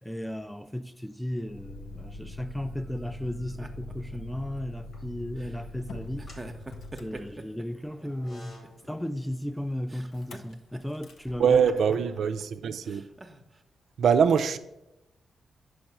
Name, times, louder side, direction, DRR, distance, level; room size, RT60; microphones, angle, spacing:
voice 1, 0.0-6.3 7.0-11.6, left 1 dB, ahead, 0.4 m, -35 dB
Motor vehicle (road), 1.5-7.9 10.1-10.5 10.9-11.3, left 2 dB, 80° left, 0.5 m, -43 dB
sound 1, 2.5-4.6 5.4-5.7 6.2-8.3 8.6-9.5 9.9-11.1 11.4-12.4 12.8-13.6, right 2 dB, 30° right, 0.7 m, -46 dB
sound 2, 4.7-5.4 6.0-12.9, left 1 dB, 50° left, 1.9 m, -54 dB
voice 2, 11.4-13.0 14.0-14.6, right 7 dB, 75° right, 0.3 m, -23 dB
5.3 x 4.8 x 5.9 m
supercardioid pair, 55°, 0 cm